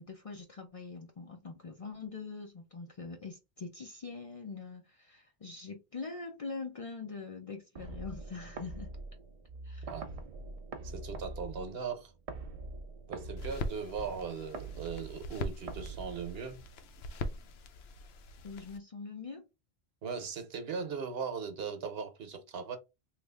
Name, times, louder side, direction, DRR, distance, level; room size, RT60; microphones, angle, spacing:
voice 1, 0.0-8.9 9.6-9.9 18.4-19.4, left 4 dB, 45° left, 0.5 m, -43 dB
sound 1, 7.8-16.8, right 3 dB, 45° right, 0.5 m, -44 dB
voice 2, 10.8-12.1 13.1-16.6 20.0-22.8, right 5 dB, 70° right, 1.0 m, -39 dB
sound 2, 13.4-18.8, left 2 dB, 80° left, 0.8 m, -42 dB
3.1 x 2.4 x 3.3 m
omnidirectional pair, 1.0 m